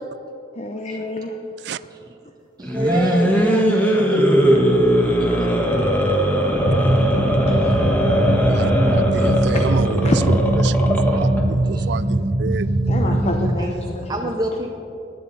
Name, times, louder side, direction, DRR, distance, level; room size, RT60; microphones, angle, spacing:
voice 1, 0.5-1.8 5.2-5.3 6.2-6.3 6.7-6.9 7.5-7.7 8.0-8.1 9.1-10.2 12.9-14.3, left 2 dB, 40° left, 4 dB, 0.8 m, -29 dB
sound 1, 2.6-11.4, equal, 10° left, 1.4 m, -19 dB
voice 2, 2.6-4.3 5.2-5.8 8.7-8.9 11.1-11.2 11.7-11.9 13.0-13.2 13.6-14.7, right 1 dB, 25° right, 1 dB, 0.7 m, -28 dB
sound 2, 6.6-13.5, right 1 dB, 50° right, 1.0 m, -20 dB
voice 3, 8.5-10.8 11.1-12.7, right 6 dB, 70° right, 17 dB, 0.3 m, -29 dB
17.0 x 11.0 x 4.1 m, 2.7 s
head